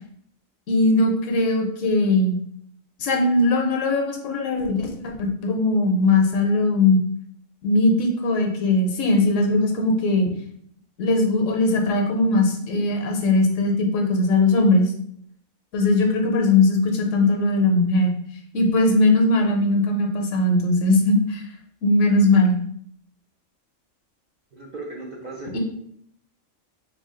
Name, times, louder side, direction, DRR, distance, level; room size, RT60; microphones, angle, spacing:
voice 1, 0.7-2.4 3.0-7.0 7.6-10.3 11.0-14.9 15.7-18.1 18.5-21.4 21.8-22.6 25.5-25.6, left 2 dB, 70° left, 2 dB, 1.0 m, -20 dB
voice 2, 24.5-25.6, right 2 dB, 45° right, -3 dB, 0.6 m, -36 dB
3.3 x 2.3 x 3.7 m, 0.68 s
omnidirectional pair, 1.4 m